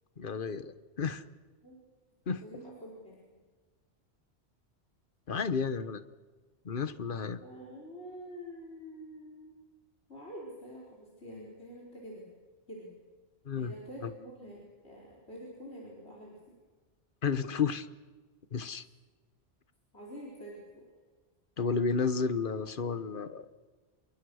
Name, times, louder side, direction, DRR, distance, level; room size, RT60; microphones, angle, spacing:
voice 1, 0.2-1.2 2.3-2.4 5.3-6.0 6.6-7.4 13.4-13.7 14.0-14.1 17.2-17.9 18.5-18.8 21.6-23.5, left 5 dB, 50° left, 13 dB, 1.2 m, -32 dB
voice 2, 2.4-3.2 7.4-9.5 10.1-12.2 12.7-12.9 13.6-16.3 19.9-20.8, equal, 70° left, -4 dB, 5.1 m, -46 dB
28.0 x 23.5 x 6.4 m, 1.4 s
omnidirectional pair, 1.1 m